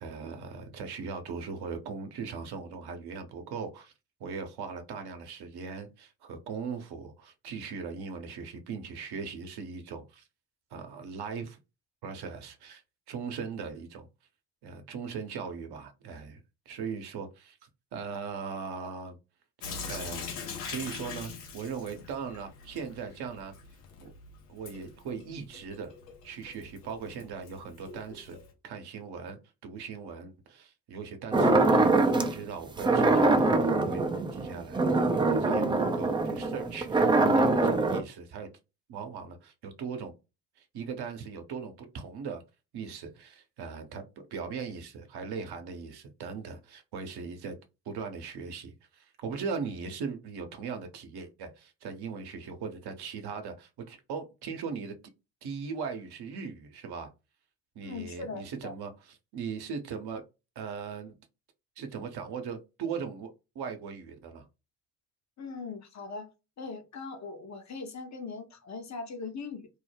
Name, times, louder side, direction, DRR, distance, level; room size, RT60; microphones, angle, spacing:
voice 1, 0.0-3.9 4.2-10.2 10.7-11.6 12.0-12.8 13.1-14.1 14.6-16.4 16.7-17.6 17.9-19.2 19.6-20.3 20.6-23.5 24.0-24.1 24.5-25.9 26.2-28.4 28.6-29.4 29.6-33.5 33.8-34.0 34.3-34.9 35.1-38.5 38.9-40.1 40.6-42.4 42.7-44.0 44.3-47.6 47.9-54.9 55.4-57.1 57.8-60.2 60.6-61.1 61.8-64.4, right 5 dB, 55° right, 0.8 m, -39 dB
Sink (filling or washing) / Drip, 19.6-28.5, left 5 dB, 85° left, 0.7 m, -43 dB
sound 1, 31.3-32.4 32.8-38.0, right 2 dB, 10° right, 0.3 m, -24 dB
voice 2, 57.8-58.7 65.4-66.3 66.6-69.7, left 4 dB, 35° left, 0.7 m, -40 dB
2.4 x 2.0 x 3.2 m
hypercardioid pair, 45°, 46 cm